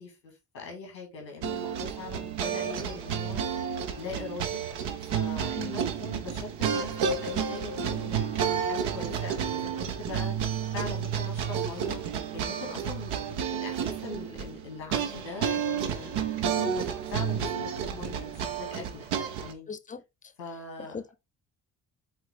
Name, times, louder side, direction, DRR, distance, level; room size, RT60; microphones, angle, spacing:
voice 1, 0.0-3.4 4.0-4.6 5.0-10.3 10.7-12.0 12.3-16.1 16.4-19.7 20.4-21.0, left 4 dB, 85° left, 2.5 m, -41 dB
sound 1, 1.4-19.5, right 7 dB, 65° right, 1.1 m, -31 dB
voice 2, 19.7-20.0 20.9-21.2, left 5 dB, 15° left, 0.6 m, -39 dB
7.7 x 4.0 x 3.5 m
figure-of-eight pair, 40°, 49 cm